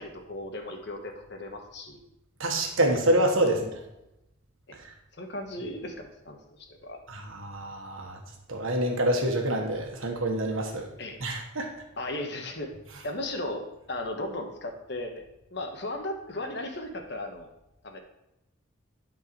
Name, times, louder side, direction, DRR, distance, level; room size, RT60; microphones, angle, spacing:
voice 1, 0.0-2.0 3.4-3.7 4.7-4.8 5.2-6.4 6.7-7.0 11.0-11.2 12.0-12.7 13.0-15.2 15.5-17.5 17.8-18.0, left 1 dB, 55° left, 3 dB, 1.3 m, -36 dB
voice 2, 2.4-3.6 7.1-8.2 8.5-10.9 11.2-11.7, right 1 dB, 85° right, 2 dB, 1.5 m, -26 dB
11.5 x 4.6 x 4.6 m, 0.89 s
head